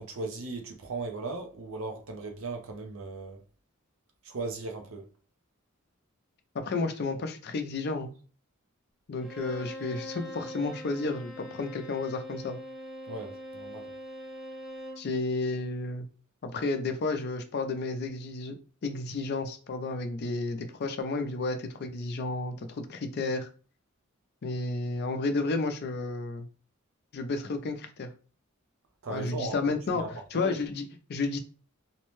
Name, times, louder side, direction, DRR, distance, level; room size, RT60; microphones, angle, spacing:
voice 1, 0.0-3.4 4.2-5.0 13.1-13.9 29.0-29.6 29.9-30.6, right 3 dB, 65° right, 0.6 m, -37 dB
voice 2, 6.5-8.1 9.1-12.6 15.0-16.1 16.4-18.6 18.8-23.5 24.4-26.5 27.1-28.1 29.1-31.4, left 3 dB, 50° left, 0.4 m, -32 dB
Bowed string instrument, 9.2-15.1, equal, ahead, 0.7 m, -42 dB
2.6 x 2.1 x 3.0 m
head